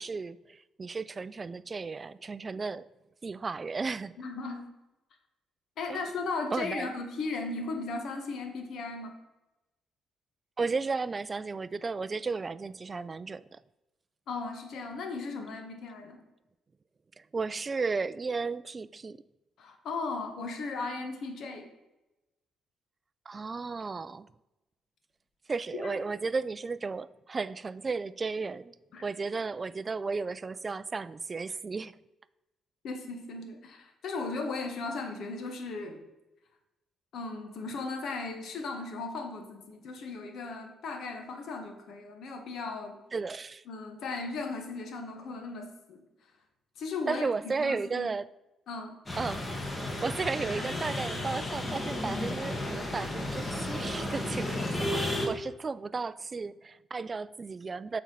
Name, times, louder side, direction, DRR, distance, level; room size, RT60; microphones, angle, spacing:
voice 1, 0.0-2.8 3.2-4.1 5.9-6.0 6.5-6.9 10.6-13.6 17.2-19.2 23.3-24.3 25.5-28.8 29.0-32.0 43.1-43.6 47.1-48.3 49.2-49.5 50.0-58.0, right 4 dB, 30° right, 0.3 m, -34 dB
voice 2, 4.2-4.6 5.8-9.2 14.3-16.2 19.6-21.7 25.7-26.0 28.9-29.0 32.8-36.0 37.1-43.0 43.7-46.0 46.8-47.3 47.6-48.1 48.7-49.0, left 3 dB, 70° left, 1.3 m, -36 dB
sound 1, 49.1-55.3, left 1 dB, 25° left, 1.5 m, -33 dB
7.1 x 4.3 x 5.4 m
cardioid pair, 90°, 0 cm